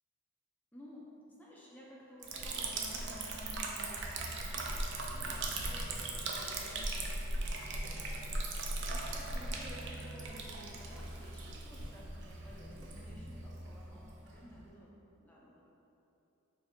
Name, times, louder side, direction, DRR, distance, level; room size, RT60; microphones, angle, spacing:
voice 1, 0.7-14.9 15.2-15.7, equal, 10° left, -5 dB, 0.4 m, -54 dB
Liquid, 2.2-14.7, right 2 dB, 55° right, 0.4 m, -39 dB
2.6 x 2.5 x 4.2 m, 2.9 s
head